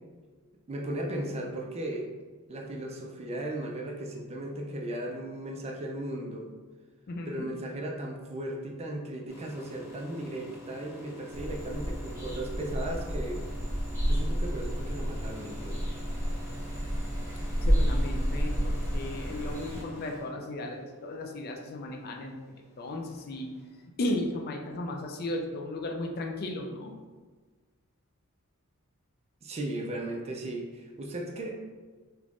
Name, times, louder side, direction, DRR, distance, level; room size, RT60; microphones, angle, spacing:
voice 1, 0.7-2.1 2.5-6.5 7.3-13.5 14.0-15.8 29.4-31.5, right 1 dB, 30° right, 1 dB, 0.4 m, -36 dB
voice 2, 7.1-7.5 17.6-23.5 24.0-27.0, left 1 dB, 45° left, 2 dB, 0.4 m, -35 dB
sound 1, 9.3-23.9, equal, 80° left, 1.0 m, -48 dB
sound 2, 11.3-19.8, equal, 15° right, 1.1 m, -30 dB
2.9 x 2.5 x 3.4 m, 1.4 s
head